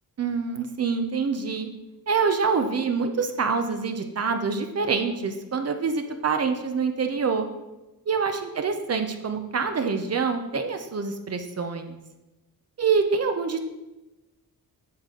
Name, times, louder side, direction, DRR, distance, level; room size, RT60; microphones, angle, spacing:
voice 1, 0.2-1.7 2.1-7.5 8.1-12.0 12.8-13.6, right 5 dB, 40° right, 6 dB, 0.8 m, -26 dB
8.5 x 5.9 x 3.8 m, 1.0 s
cardioid pair, 110°, 37 cm